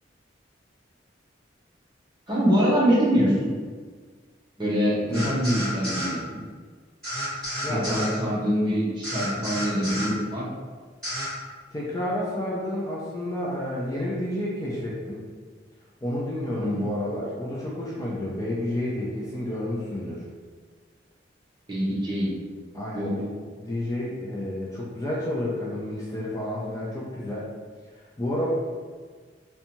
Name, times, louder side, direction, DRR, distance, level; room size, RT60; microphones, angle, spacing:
voice 1, 2.3-3.5 4.6-6.2 7.7-10.5 16.6-16.9 21.7-22.3 22.9-23.1, equal, 25° right, -7 dB, 0.7 m, -24 dB
sound 1, 5.1-6.1 7.0-8.1 9.0-10.1 11.0-11.3, equal, 5° left, 1.4 m, -31 dB
voice 2, 7.6-8.0 11.7-15.2 16.0-20.2 22.7-23.3 23.5-27.5 28.2-28.5, left 1 dB, 20° left, -6 dB, 0.4 m, -30 dB
2.6 x 2.2 x 2.9 m, 1.5 s
head